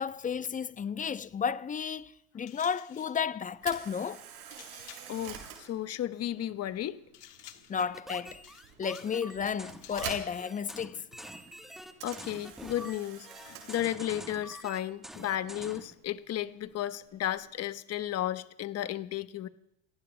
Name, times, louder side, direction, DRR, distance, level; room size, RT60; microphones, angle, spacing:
voice 1, 0.0-4.2 7.7-8.4 8.8-11.1, left 7 dB, 20° left, 0.6 m, -33 dB
sound 1, 2.5-3.2 4.5-5.2 7.1-7.8 8.4-9.2 9.5-10.2, left 11 dB, 85° left, 1.4 m, -52 dB
Camera, 3.5-17.6, right 9 dB, 65° right, 6.2 m, -49 dB
voice 2, 5.1-7.0 12.0-19.5, left 12 dB, 35° left, 1.0 m, -34 dB
sound 2, 7.8-15.9, equal, ahead, 1.2 m, -47 dB
30.0 x 19.0 x 2.2 m
hypercardioid pair, 90°, 46 cm